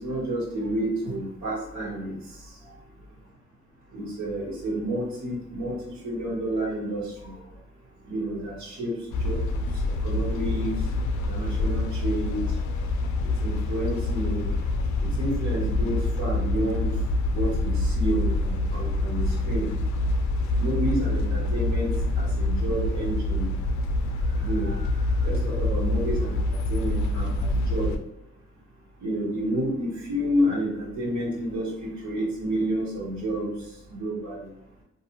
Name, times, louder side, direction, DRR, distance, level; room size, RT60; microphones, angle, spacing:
voice 1, 0.0-2.1 3.9-5.8 6.0-7.4 8.1-8.9 9.2-9.4 10.0-10.7 11.3-12.4 13.4-14.5 15.0-16.9 17.3-19.7 20.6-21.9 22.2-23.5 24.4-24.9 25.2-27.9 29.0-33.5 33.9-34.4, right 1 dB, 65° right, -5 dB, 1.2 m, -30 dB
sound 1, 9.1-28.0, left 2 dB, 70° left, 0.4 m, -26 dB
2.4 x 2.3 x 2.9 m, 0.84 s
cardioid pair, 90°, 30 cm